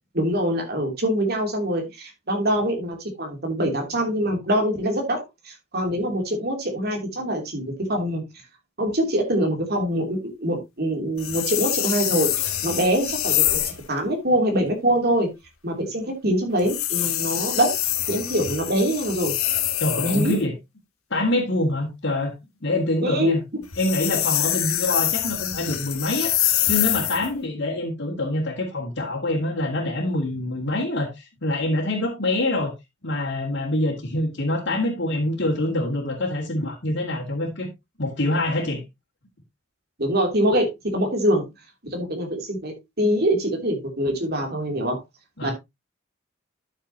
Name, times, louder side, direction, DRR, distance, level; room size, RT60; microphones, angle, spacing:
voice 1, 0.1-8.2 8.8-12.3 12.6-15.3 15.6-17.8 18.1-19.3 20.0-20.4 23.0-23.3 40.0-41.4 41.9-45.0 45.4-45.5, equal, 50° right, 3.0 m, -24 dB
sound 1, 11.2-13.8 16.6-20.4 23.6-27.3, left 12 dB, 90° left, 1.3 m, -25 dB
voice 2, 19.8-20.5 21.1-22.3 22.6-23.4 23.8-26.3 26.7-32.7 33.0-37.7 38.0-38.8 45.4-45.5, left 1 dB, 55° left, 2.3 m, -25 dB
12.0 x 6.6 x 2.9 m
head